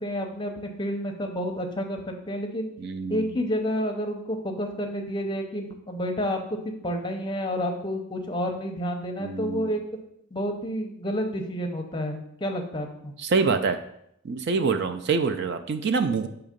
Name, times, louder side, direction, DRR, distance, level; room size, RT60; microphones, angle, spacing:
voice 1, 0.0-2.7 3.1-6.4 6.6-9.8 10.3-13.1, equal, 20° left, 3 dB, 0.6 m, -30 dB
voice 2, 2.8-3.4 9.2-9.7 13.2-13.8 14.2-16.3, right 4 dB, 50° right, 8 dB, 0.4 m, -26 dB
6.4 x 2.9 x 5.1 m, 0.74 s
head